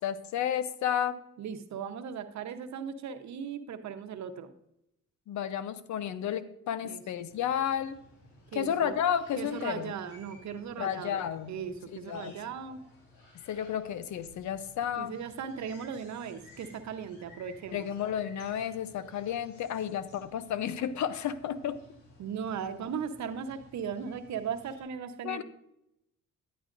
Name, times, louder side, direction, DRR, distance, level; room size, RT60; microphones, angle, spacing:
voice 1, 0.0-1.2 5.3-8.0 8.5-9.9 10.8-11.5 12.1-12.3 13.4-15.1 17.7-21.8 25.2-25.4, left 9 dB, 70° left, 13 dB, 0.7 m, -32 dB
voice 2, 1.4-4.5 6.8-7.0 8.5-9.0 9.4-12.8 15.0-17.9 22.2-25.4, right 7 dB, 65° right, 8 dB, 0.9 m, -38 dB
sound 1, 7.3-24.8, left 2 dB, 85° left, 3.8 m, -57 dB
10.0 x 10.0 x 2.6 m, 0.80 s
cardioid pair, 90°, 30 cm